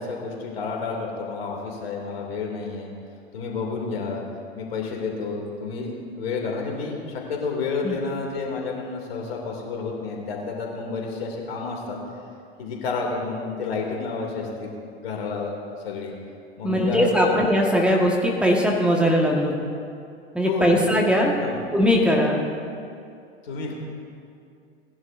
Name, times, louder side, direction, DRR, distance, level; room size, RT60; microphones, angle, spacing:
voice 1, 0.0-2.9 3.3-4.2 4.5-12.0 12.6-14.7 15.0-15.5 15.8-16.1 16.6-17.3 20.4-21.0 21.3-21.6 23.4-23.7, left 4 dB, 65° left, -1 dB, 2.8 m, -30 dB
voice 2, 16.6-19.5 20.3-21.3 21.7-22.4, equal, 5° right, -1 dB, 1.6 m, -20 dB
19.0 x 11.0 x 2.6 m, 2.4 s
hypercardioid pair, 90°, 32 cm